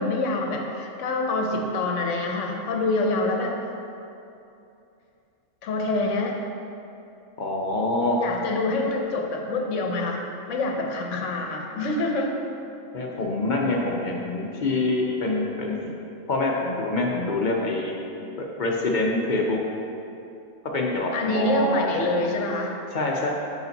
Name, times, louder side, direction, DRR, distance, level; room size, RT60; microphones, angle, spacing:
voice 1, 0.0-3.6 5.6-6.4 8.2-12.4 21.1-22.8, left 2 dB, 65° left, 1 dB, 1.1 m, -26 dB
voice 2, 7.4-8.2 12.9-15.9 16.3-17.9 18.6-19.6 20.7-22.0 22.9-23.3, left 2 dB, 45° left, -1 dB, 0.7 m, -25 dB
5.3 x 5.1 x 5.2 m, 2.7 s
omnidirectional pair, 1.4 m